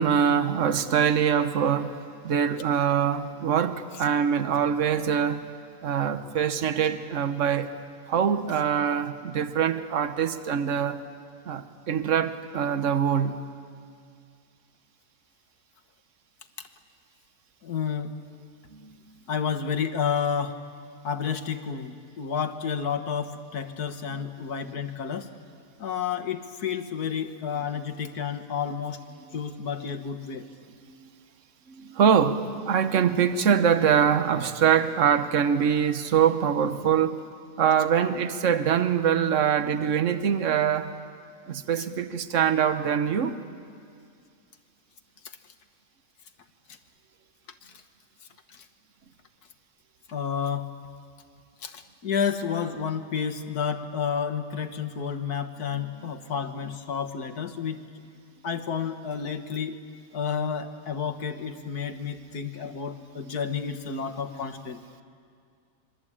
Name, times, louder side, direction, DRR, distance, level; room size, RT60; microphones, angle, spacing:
voice 1, 0.0-1.9 2.2-5.5 5.8-7.7 8.1-11.0 11.4-13.4 18.7-19.0 30.9-31.1 31.7-37.2 37.6-40.9 41.5-43.4 56.0-56.1, right 8 dB, 55° right, 1.4 m, -24 dB
voice 2, 17.6-18.1 19.3-20.6 21.0-25.3 25.8-29.0 29.3-30.5 41.8-41.9 45.2-45.4 46.7-46.8 47.6-47.8 48.5-48.7 50.1-50.7 51.6-57.8 58.4-59.8 60.1-64.8, left 7 dB, 85° left, 1.9 m, -30 dB
26.5 x 23.5 x 8.7 m
omnidirectional pair, 1.6 m